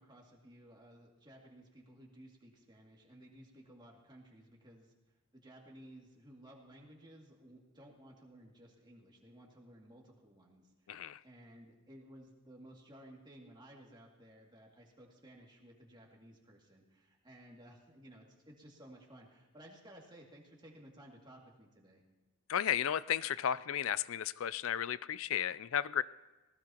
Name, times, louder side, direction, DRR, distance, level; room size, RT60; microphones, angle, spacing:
voice 1, 0.0-4.9 5.3-22.0, right 1 dB, 20° right, -2 dB, 2.5 m, -57 dB
voice 2, 10.9-11.2 22.5-26.0, left 9 dB, 65° left, 18 dB, 0.4 m, -34 dB
19.5 x 19.0 x 3.0 m, 1.2 s
head